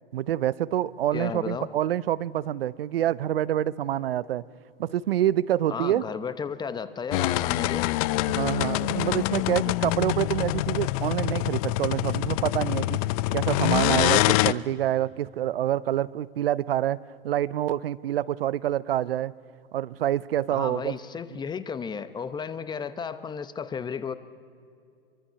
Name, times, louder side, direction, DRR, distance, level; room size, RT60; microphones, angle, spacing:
voice 1, 0.1-4.4 4.8-6.0 8.3-13.0 13.3-19.3 19.7-20.9, right 12 dB, 75° right, 18 dB, 0.7 m, -27 dB
voice 2, 1.1-1.7 5.7-7.9 20.5-24.1, left 6 dB, 15° left, 13 dB, 0.8 m, -33 dB
sound 1, 7.1-14.5, left 18 dB, 40° left, 0.5 m, -25 dB
23.5 x 23.5 x 5.7 m, 2.3 s
hypercardioid pair, 120°, 29 cm